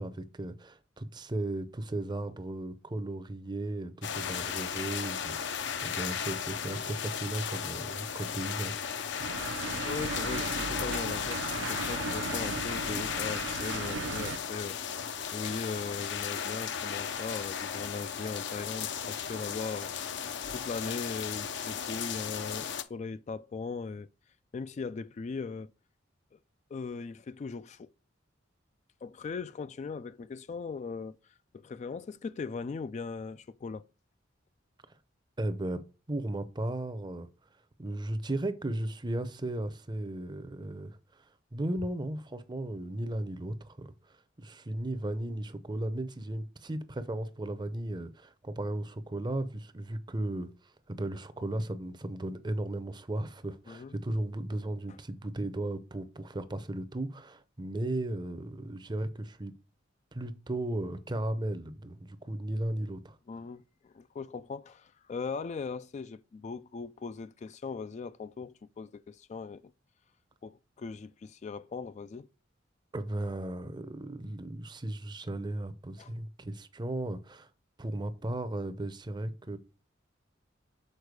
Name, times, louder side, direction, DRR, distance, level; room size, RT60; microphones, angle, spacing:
voice 1, 0.0-8.8 35.4-35.8 36.1-37.3 37.8-41.0 41.5-43.9 44.4-50.5 50.9-59.5 60.1-63.2 72.9-77.5 77.8-79.6, right 1 dB, 25° right, 0.6 m, -35 dB
sound 1, 4.0-22.8, left 7 dB, 65° left, 0.6 m, -35 dB
sound 2, 9.2-14.4, right 4 dB, 70° right, 0.5 m, -37 dB
voice 2, 9.8-14.8 15.3-24.1 24.5-25.7 26.7-27.9 29.0-31.2 31.5-33.8 53.7-53.9 63.3-69.7 70.4-72.3 76.0-76.1, left 4 dB, 35° left, 0.3 m, -39 dB
6.7 x 4.4 x 4.7 m
head